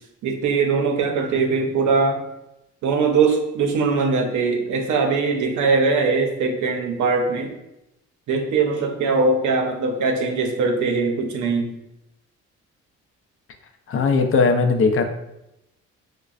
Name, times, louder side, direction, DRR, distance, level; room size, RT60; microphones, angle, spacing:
voice 1, 0.2-2.2 2.8-7.5 8.3-11.7, right 4 dB, 75° right, 3 dB, 0.7 m, -21 dB
voice 2, 13.9-15.1, left 4 dB, 45° left, 5 dB, 0.5 m, -18 dB
5.0 x 2.2 x 2.4 m, 0.87 s
cardioid pair, 90°, 30 cm